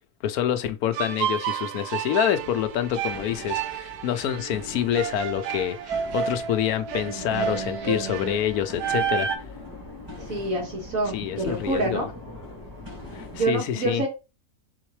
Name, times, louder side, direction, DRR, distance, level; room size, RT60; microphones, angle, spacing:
voice 1, 0.2-9.3 11.1-12.1 13.1-14.0, left 10 dB, 75° left, 1.0 m, -27 dB
sound 1, 0.9-9.4, right 8 dB, 80° right, 1.2 m, -30 dB
sound 2, 2.4-13.4, left 2 dB, 15° right, 1.7 m, -42 dB
voice 2, 7.1-8.4 10.3-12.1 13.3-14.1, right 2 dB, 60° right, 2.2 m, -28 dB
4.1 x 3.9 x 3.1 m
omnidirectional pair, 1.6 m